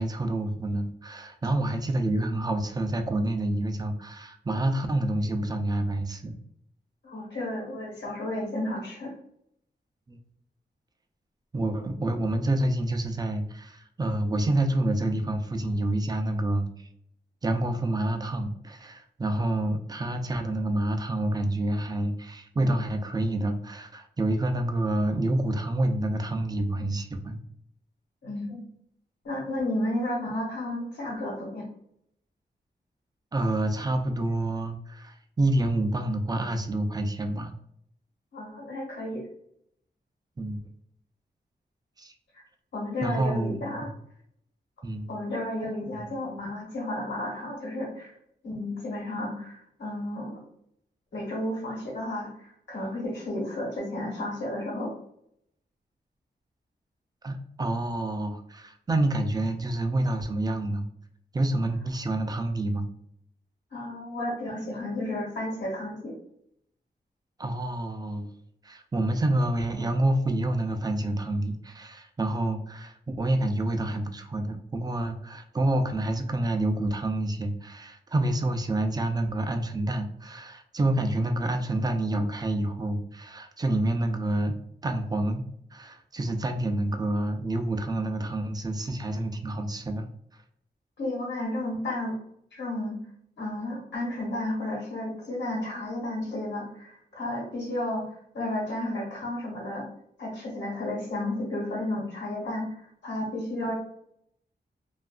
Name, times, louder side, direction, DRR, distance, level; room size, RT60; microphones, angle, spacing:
voice 1, 0.0-6.4 10.1-10.2 11.5-16.7 17.4-27.4 33.3-37.5 40.4-40.6 42.0-42.1 43.0-43.9 44.8-45.1 45.9-46.0 57.2-60.8 61.3-62.8 67.4-68.3 68.6-84.5 84.8-85.4 85.7-90.1, right 1 dB, 20° right, 6 dB, 0.3 m, -28 dB
voice 2, 7.0-9.1 28.2-28.6 29.2-31.7 38.3-39.2 42.3-42.4 42.7-43.9 45.1-48.1 48.4-50.4 51.1-54.9 63.7-66.1 91.0-92.1 92.5-93.0 93.4-98.1 98.3-99.9 100.2-103.7, left 1 dB, 85° left, -4 dB, 1.1 m, -32 dB
2.7 x 2.3 x 2.3 m, 0.72 s
wide cardioid pair, 130°, 18 cm